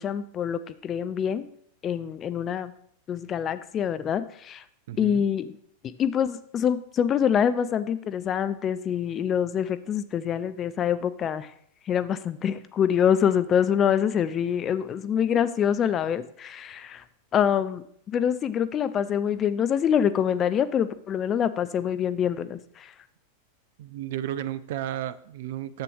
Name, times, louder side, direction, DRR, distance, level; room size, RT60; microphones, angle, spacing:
voice 1, 0.0-1.5 1.8-2.7 3.1-4.6 5.0-5.5 5.8-11.5 11.8-17.0 17.3-22.9, left 8 dB, 30° left, 13 dB, 0.4 m, -25 dB
voice 2, 4.9-5.2 23.8-25.8, right 12 dB, 55° right, 15 dB, 0.3 m, -33 dB
10.5 x 7.6 x 3.3 m, 0.65 s
figure-of-eight pair, 90°, 0 cm